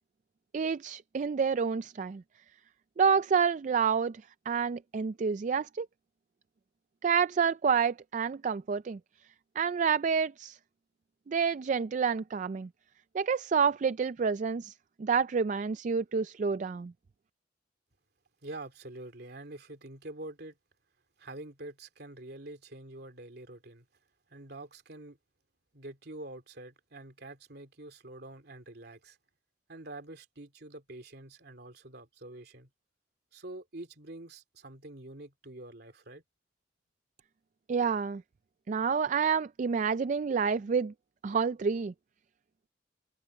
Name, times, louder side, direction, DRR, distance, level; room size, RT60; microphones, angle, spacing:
voice 1, 0.5-2.2 3.0-5.9 7.0-9.0 9.6-10.6 11.3-12.7 13.1-14.7 15.0-16.9 37.7-38.2 38.7-40.9 41.2-41.9, right 6 dB, 40° right, 0.3 m, -28 dB
voice 2, 18.4-20.6 21.2-23.8 24.3-25.2 25.7-29.2 29.7-32.7 33.3-36.2, right 2 dB, 60° right, 2.9 m, -46 dB
head